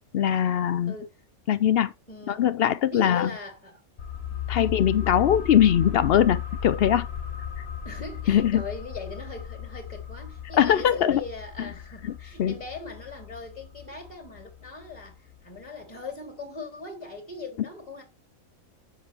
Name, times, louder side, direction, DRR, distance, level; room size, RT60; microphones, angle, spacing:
voice 1, 0.1-0.9 1.5-1.9 2.3-3.3 4.5-7.1 8.3-8.6 10.6-11.2 11.6-11.7 12.0-12.1 12.4-12.6, left 10 dB, 65° left, 0.6 m, -21 dB
voice 2, 1.7-2.5 2.9-3.8 4.3-4.8 7.8-18.0, left 3 dB, 20° left, 2.9 m, -40 dB
sound 1, 4.0-15.4 15.6-15.7, left 9 dB, 45° left, 1.5 m, -36 dB
7.4 x 7.0 x 3.4 m
omnidirectional pair, 1.5 m